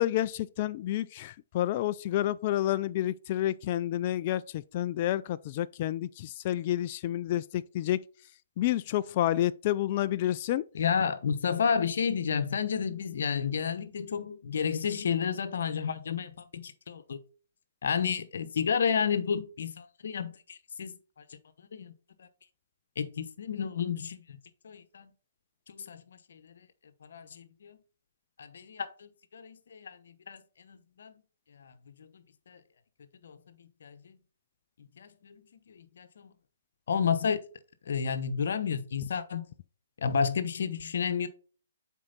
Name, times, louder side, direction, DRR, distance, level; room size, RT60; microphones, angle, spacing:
voice 1, 0.0-8.0 8.6-10.6, left 13 dB, 40° left, 0.3 m, -29 dB
voice 2, 10.7-17.2 17.8-21.0 21.7-21.9 23.0-24.4 24.6-25.1 25.7-26.4 27.1-27.8 28.4-30.0 30.3-31.1 31.6-31.7 32.5-32.6 33.2-33.4 33.8-34.2 35.0-35.4 35.7-36.3 36.9-37.4 37.9-39.5 40.0-41.3, left 6 dB, 65° left, 1.0 m, -31 dB
7.5 x 4.6 x 4.0 m
hypercardioid pair, 140°, 0 cm